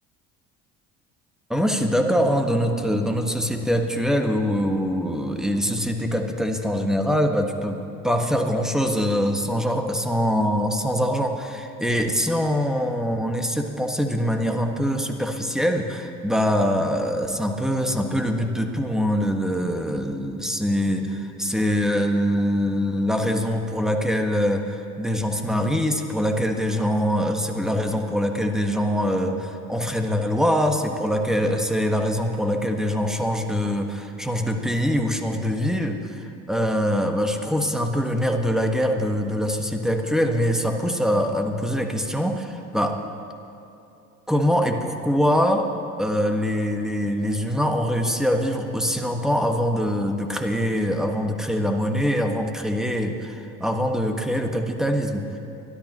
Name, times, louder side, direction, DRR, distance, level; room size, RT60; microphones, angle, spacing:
voice 1, 1.5-43.0 44.3-45.7 46.0-55.4, equal, ahead, 3 dB, 1.6 m, -23 dB
24.0 x 13.0 x 3.1 m, 2.9 s
hypercardioid pair, 60°, 38 cm